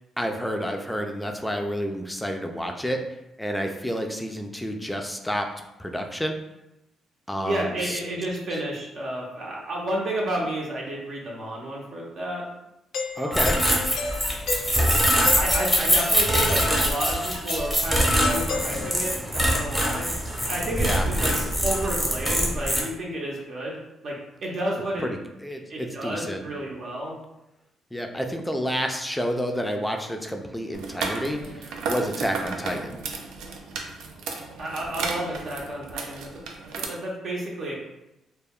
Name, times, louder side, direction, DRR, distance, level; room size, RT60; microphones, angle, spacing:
voice 1, 0.2-3.0 3.4-5.5 5.8-6.3 7.3-8.0 13.2-13.6 20.8-21.1 25.0-26.4 27.9-33.0, equal, 5° left, 4 dB, 0.4 m, -29 dB
voice 2, 7.4-12.4 13.1-13.5 14.9-20.1 20.5-21.3 21.6-23.8 24.0-24.2 24.4-25.1 25.7-27.2 34.6-36.3 36.8-37.8, right 1 dB, 60° right, -3 dB, 0.7 m, -31 dB
Doorbell, 12.9-19.3, left 3 dB, 80° left, 0.4 m, -34 dB
sound 1, 13.3-22.8, equal, 10° right, 0.8 m, -23 dB
sound 2, 30.7-36.8, right 4 dB, 90° right, 0.3 m, -34 dB
2.2 x 2.1 x 3.5 m, 0.92 s
cardioid pair, 90°, 0 cm